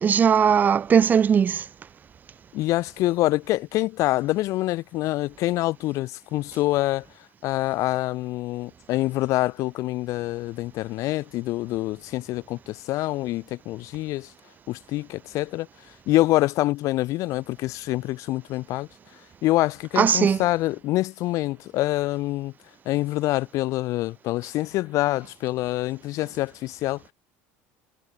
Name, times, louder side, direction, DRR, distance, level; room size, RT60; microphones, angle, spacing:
voice 1, 0.0-1.6 20.0-20.4, right 7 dB, 30° right, 0.7 m, -19 dB
voice 2, 2.5-7.0 7.4-14.3 14.7-15.7 16.1-18.9 19.4-22.5 22.9-27.1, left 17 dB, 60° left, 7.5 m, -26 dB
supercardioid pair, 115°, 6 cm